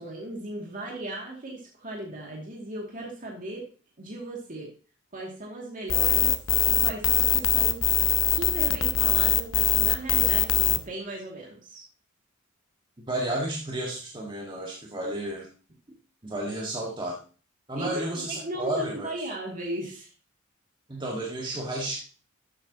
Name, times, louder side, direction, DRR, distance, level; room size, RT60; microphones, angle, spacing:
voice 1, 0.0-3.6 4.0-4.7 5.1-6.3 6.6-7.8 8.2-11.8 17.8-20.1, right 1 dB, 40° right, -1 dB, 2.4 m, -37 dB
sound 1, 5.9-10.8, left 11 dB, 65° left, 0.7 m, -22 dB
voice 2, 13.1-15.5 16.2-17.2 17.7-19.1 20.9-22.0, right 1 dB, 25° right, -2 dB, 1.8 m, -32 dB
12.0 x 8.6 x 2.9 m, 0.37 s
head